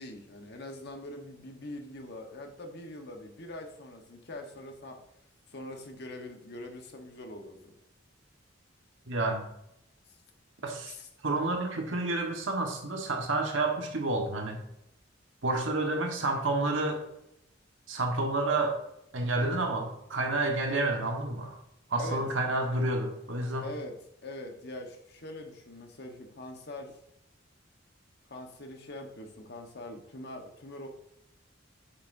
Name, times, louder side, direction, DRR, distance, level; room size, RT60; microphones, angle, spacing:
voice 1, 0.0-5.0 5.5-7.7 10.1-10.2 10.8-11.1 22.0-22.2 23.6-23.9 24.2-27.0 28.3-30.9, left 1 dB, 60° left, 3 dB, 1.2 m, -43 dB
voice 2, 9.1-9.4 10.6-10.9 11.2-14.6 15.4-17.0 17.9-18.8 19.1-21.6 21.9-23.7, right 2 dB, 85° right, 2 dB, 1.4 m, -29 dB
8.3 x 6.3 x 2.7 m, 0.80 s
head